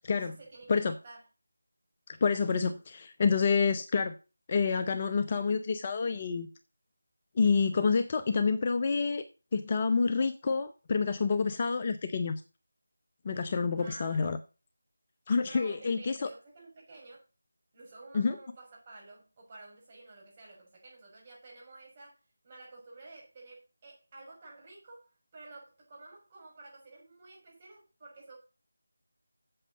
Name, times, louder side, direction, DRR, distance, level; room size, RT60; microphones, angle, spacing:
voice 1, 0.2-1.2 13.8-14.3 15.5-17.2 17.7-22.2 22.4-28.4, right 3 dB, 25° right, 5.7 m, -51 dB
voice 2, 2.1-4.1 4.5-6.5 7.3-9.2 9.5-12.4 13.2-14.4 15.3-16.3 18.1-18.4, left 5 dB, 25° left, 0.6 m, -28 dB
7.7 x 7.5 x 6.4 m
figure-of-eight pair, 165°, 0 cm